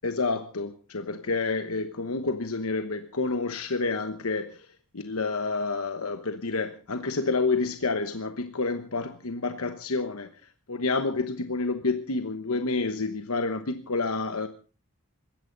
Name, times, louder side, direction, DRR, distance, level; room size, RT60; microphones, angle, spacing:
voice 1, 0.0-4.6 4.9-10.3 10.7-14.5, left 3 dB, 80° left, 8 dB, 1.1 m, -29 dB
21.0 x 16.5 x 3.9 m, 0.36 s
head